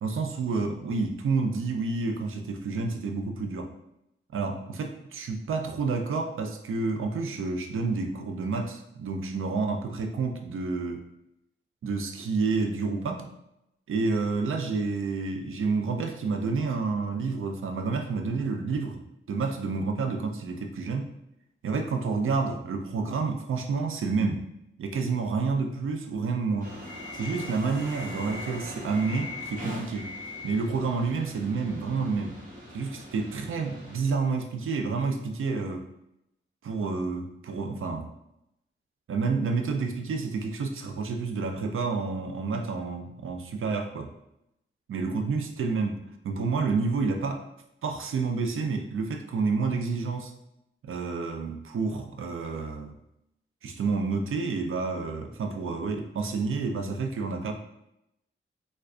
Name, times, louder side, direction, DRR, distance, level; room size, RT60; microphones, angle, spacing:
voice 1, 0.0-3.7 4.3-11.1 11.8-13.3 13.9-19.0 19.3-21.1 21.6-24.4 24.8-26.8 27.1-30.1 30.4-32.4 32.7-35.8 36.6-38.1 39.1-44.1 44.9-47.4 47.8-50.3 50.8-52.9 53.6-57.5, right 4 dB, 75° right, 4 dB, 0.5 m, -29 dB
sound 1, 26.6-34.0, left 1 dB, 40° right, 1.1 m, -40 dB
3.3 x 2.2 x 3.7 m, 0.84 s
wide cardioid pair, 130°, 21 cm